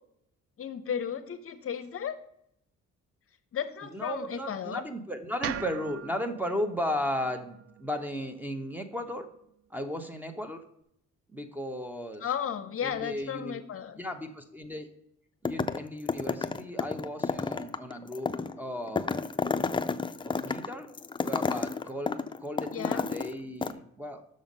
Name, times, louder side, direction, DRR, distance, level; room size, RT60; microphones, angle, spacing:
voice 1, 0.6-2.2 3.5-4.8 12.2-14.0 22.7-23.0, left 8 dB, 50° left, 9 dB, 0.7 m, -34 dB
voice 2, 3.8-9.3 9.7-10.6 11.3-12.2 12.8-13.6 14.0-14.9 15.4-18.3 18.6-19.1 20.2-20.9 21.2-24.2, equal, 5° right, 7 dB, 0.9 m, -35 dB
sound 1, 5.4-9.6, right 10 dB, 50° right, 0.4 m, -42 dB
sound 2, 15.4-23.3 23.6-23.7, left 4 dB, 15° left, 0.4 m, -31 dB
6.4 x 5.6 x 5.3 m, 0.74 s
cardioid pair, 90°, 30 cm